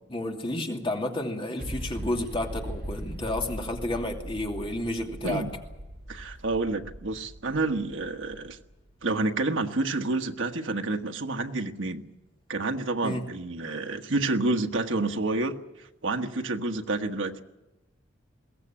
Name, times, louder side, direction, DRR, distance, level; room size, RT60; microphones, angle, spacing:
voice 1, 0.1-5.5 13.0-13.2, left 1 dB, 25° left, 2 dB, 2.7 m, -31 dB
sound 1, 1.6-9.1, equal, 55° right, 3.8 m, -40 dB
voice 2, 6.1-8.6 9.0-12.0 12.5-15.6 16.0-17.4, right 2 dB, 80° right, 6 dB, 1.4 m, -29 dB
22.0 x 17.5 x 8.7 m, 1.0 s
head